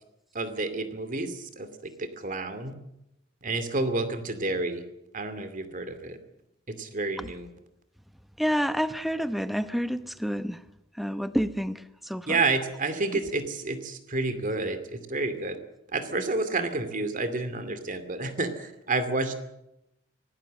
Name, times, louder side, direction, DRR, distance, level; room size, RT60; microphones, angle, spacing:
voice 1, 0.3-2.7 3.4-4.8 5.1-6.2 6.7-7.5 12.3-15.6 15.9-19.3, right 3 dB, 45° right, 10 dB, 2.5 m, -30 dB
voice 2, 8.4-10.6 11.0-12.5 13.1-13.2, equal, ahead, 12 dB, 0.9 m, -29 dB
23.5 x 18.0 x 7.7 m, 0.85 s
head